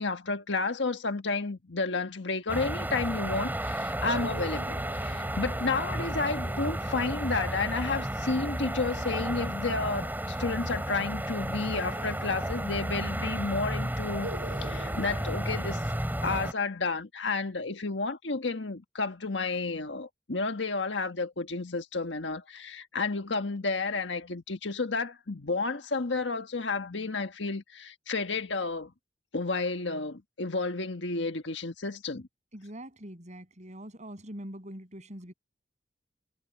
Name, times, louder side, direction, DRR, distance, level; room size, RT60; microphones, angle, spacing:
voice 1, 0.0-14.3 14.6-15.8 16.2-28.9 29.3-32.3, left 3 dB, 85° left, 1.5 m, -31 dB
sound 1, 2.5-16.5, right 1 dB, 10° right, 4.8 m, -33 dB
sound 2, 4.0-9.5 11.7-13.2 13.4-13.5 14.2-16.4, right 1 dB, 85° right, 4.5 m, -46 dB
voice 2, 32.5-35.3, right 1 dB, 40° right, 7.3 m, -43 dB
head